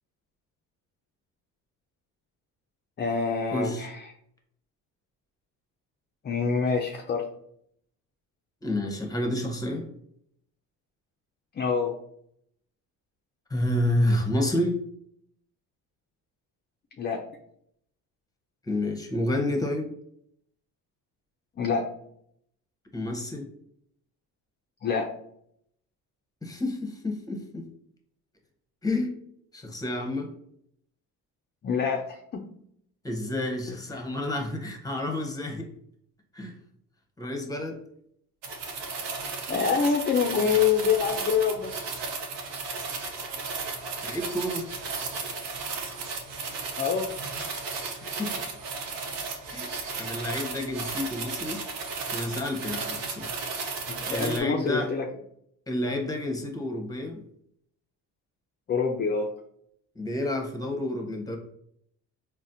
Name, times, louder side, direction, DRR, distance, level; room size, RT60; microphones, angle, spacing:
voice 1, 3.0-4.1 6.2-7.3 11.5-12.0 17.0-17.3 21.6-21.9 24.8-25.1 31.6-32.5 39.5-41.7 46.8-47.1 53.9-55.1 58.7-59.3, left 6 dB, 25° left, 2 dB, 0.4 m, -26 dB
voice 2, 3.5-3.9 8.6-9.9 13.5-14.8 18.7-19.9 22.9-23.5 26.4-27.7 28.8-29.1 29.5-30.3 33.0-35.7 36.3-36.5 37.2-37.8 44.0-44.7 48.0-48.5 49.5-51.6 52.1-53.3 54.0-54.9 55.7-57.2 60.0-61.4, left 1 dB, 10° left, 2 dB, 0.8 m, -29 dB
sound 1, 38.4-54.4, right 4 dB, 80° right, 0.7 m, -34 dB
4.0 x 2.1 x 2.5 m, 0.70 s
supercardioid pair, 70°, 40 cm